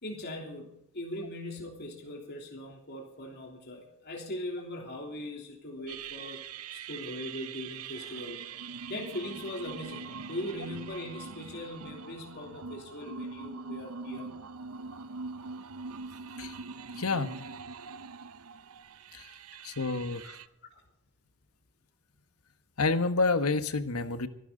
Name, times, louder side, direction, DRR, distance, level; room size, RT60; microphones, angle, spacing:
voice 1, 0.0-6.4 6.7-8.4 8.9-14.4 20.7-20.8, left 1 dB, 50° left, 0 dB, 3.2 m, -40 dB
sound 1, 5.9-20.5, right 5 dB, 85° right, 0.7 m, -43 dB
voice 2, 17.0-17.4 19.1-19.3 19.6-20.4 22.8-24.3, left 3 dB, 85° left, 10 dB, 1.4 m, -28 dB
24.0 x 12.0 x 3.9 m, 0.79 s
head